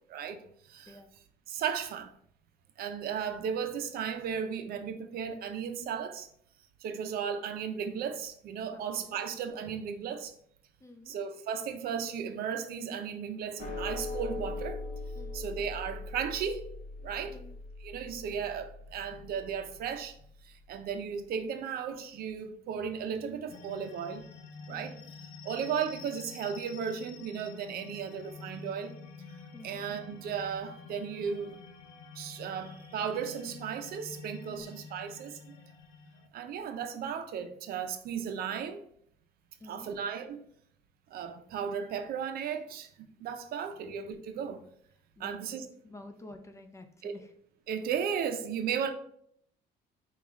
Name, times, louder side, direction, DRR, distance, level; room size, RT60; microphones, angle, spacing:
voice 1, 0.1-1.0 1.5-2.1 2.8-6.3 6.8-10.3 11.1-14.8 15.3-16.7 17.0-17.4 17.8-20.2 20.4-24.2 24.7-25.0 25.4-28.9 29.6-31.6 32.1-35.6 36.3-38.8 39.7-40.4 41.1-44.6 45.2-45.6 47.0-47.1 47.7-48.9, right 7 dB, 65° right, 0.5 m, -35 dB
voice 2, 8.7-9.2 10.8-11.2 15.2-15.5 17.2-17.6 24.7-25.1 29.5-29.9 34.5-34.7 39.6-39.9 43.8-43.9 45.2-45.4 45.8-47.3, left 1 dB, 15° left, 0.4 m, -50 dB
sound 1, 13.6-20.1, left 2 dB, 45° left, 0.8 m, -40 dB
sound 2, 23.5-36.3, left 5 dB, 90° left, 0.5 m, -48 dB
4.8 x 2.3 x 3.0 m
cardioid pair, 110°, 17 cm